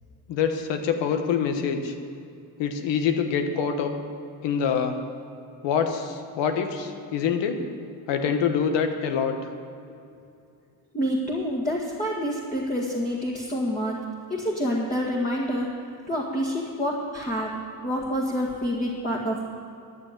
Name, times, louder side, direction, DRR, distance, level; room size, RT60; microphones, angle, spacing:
voice 1, 0.3-1.9 2.6-3.9 4.4-5.0 5.6-7.6 8.1-9.4, left 6 dB, 85° left, 6 dB, 1.3 m, -25 dB
voice 2, 10.9-14.0 14.3-15.7 16.1-17.5 17.8-19.5, equal, 20° left, -3 dB, 1.9 m, -27 dB
11.5 x 6.8 x 9.0 m, 2.5 s
cardioid pair, 85°, 43 cm